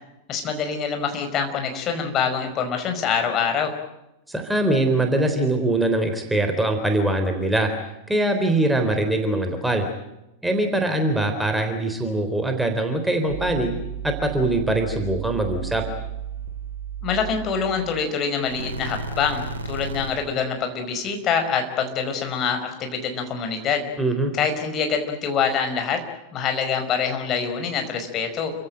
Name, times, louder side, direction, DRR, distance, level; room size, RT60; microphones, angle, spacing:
voice 1, 0.3-3.7 17.0-23.9 24.3-26.0 26.3-28.5, left 6 dB, 30° left, 5 dB, 5.2 m, -25 dB
voice 2, 4.3-7.7 8.1-9.9 10.4-13.7 14.0-15.8 24.0-24.3, right 1 dB, 5° right, 5 dB, 3.7 m, -22 dB
sound 1, 13.3-18.1 18.3-20.4, right 6 dB, 75° right, 2.7 m, -34 dB
29.5 x 16.5 x 9.0 m, 0.92 s
figure-of-eight pair, 90°, 0 cm